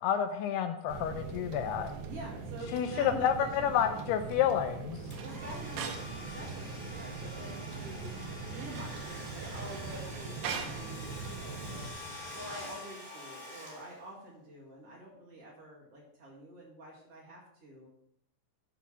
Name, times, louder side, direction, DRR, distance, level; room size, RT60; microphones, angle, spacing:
voice 1, 0.0-1.9 2.7-5.0, left 9 dB, 80° left, 8 dB, 2.4 m, -29 dB
sound 1, 0.9-11.9, right 4 dB, 70° right, 2.4 m, -41 dB
voice 2, 2.1-3.9 5.2-8.1 8.4-11.9 12.3-17.9, right 1 dB, 45° right, -5 dB, 2.4 m, -47 dB
Domestic sounds home sounds, 5.1-14.3, left 1 dB, 5° left, 2.7 m, -46 dB
8.1 x 5.8 x 6.0 m, 0.76 s
omnidirectional pair, 4.9 m